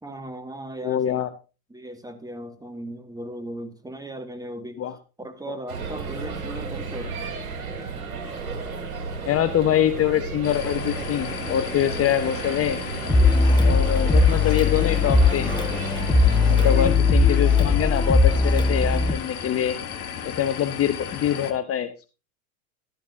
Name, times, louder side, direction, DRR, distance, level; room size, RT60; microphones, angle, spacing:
voice 1, 0.0-1.2 1.7-4.8 5.2-7.2, right 1 dB, 10° right, 2.0 m, -37 dB
voice 2, 0.8-1.3 4.8-4.9 9.2-12.8 13.6-15.5 16.5-19.8 20.2-22.1, left 10 dB, 35° left, 0.9 m, -24 dB
sound 1, 5.7-16.9, right 4 dB, 75° right, 3.8 m, -33 dB
sound 2, 10.4-21.5, left 8 dB, 80° left, 1.6 m, -35 dB
sound 3, 13.1-19.1, left 4 dB, 10° left, 1.6 m, -19 dB
12.5 x 12.5 x 2.8 m
hypercardioid pair, 80°, 43 cm